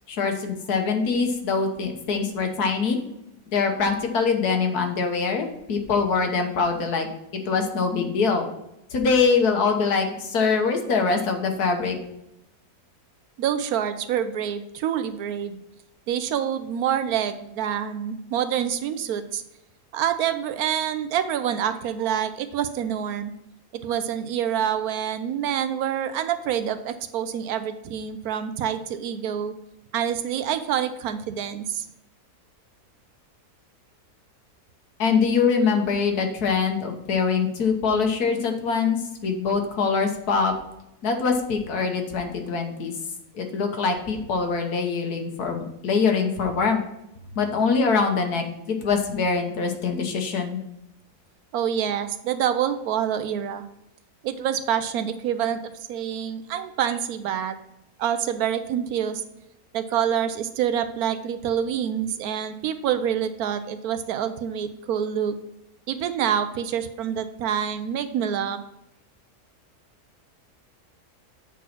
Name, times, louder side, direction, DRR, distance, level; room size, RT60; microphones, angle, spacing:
voice 1, 0.0-3.0 3.5-7.1 7.3-8.5 8.9-12.0 35.0-40.5 41.0-42.9 43.3-46.8 47.3-50.6, left 5 dB, 70° left, 4 dB, 1.6 m, -23 dB
voice 2, 13.4-15.6 16.1-19.4 19.9-23.3 23.7-29.5 29.9-31.9 51.5-53.6 54.2-57.6 58.0-59.2 59.7-65.3 65.9-68.6, right 9 dB, 75° right, 11 dB, 1.0 m, -27 dB
8.2 x 4.1 x 5.9 m, 0.83 s
omnidirectional pair, 1.7 m